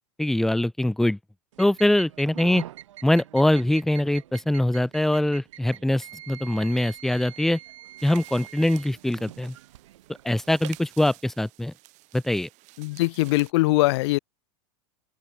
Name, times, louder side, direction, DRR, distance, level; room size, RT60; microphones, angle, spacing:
voice 1, 0.2-1.2 1.6-2.6 3.0-7.6 8.0-9.5 10.2-11.7 12.1-12.5, left 1 dB, ahead, 0.4 m, -23 dB
sound 1, 1.5-10.9, right 13 dB, 80° right, 1.2 m, -44 dB
sound 2, 8.0-13.5, right 22 dB, 50° right, 5.9 m, -51 dB
voice 2, 12.8-14.2, left 21 dB, 65° left, 1.0 m, -22 dB
open air
hypercardioid pair, 110°, 15 cm